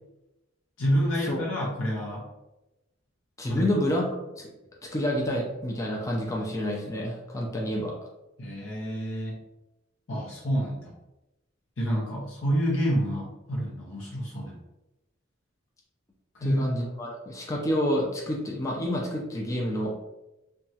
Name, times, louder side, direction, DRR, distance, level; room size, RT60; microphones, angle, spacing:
voice 1, 0.8-2.3 3.5-3.7 8.4-9.4 10.1-10.9 11.8-14.6 16.3-16.6, equal, 65° left, -4 dB, 0.6 m, -28 dB
voice 2, 3.4-4.0 4.4-4.5 4.9-7.9 16.4-20.0, equal, 15° left, -2 dB, 0.4 m, -28 dB
2.9 x 2.2 x 2.7 m, 0.98 s
head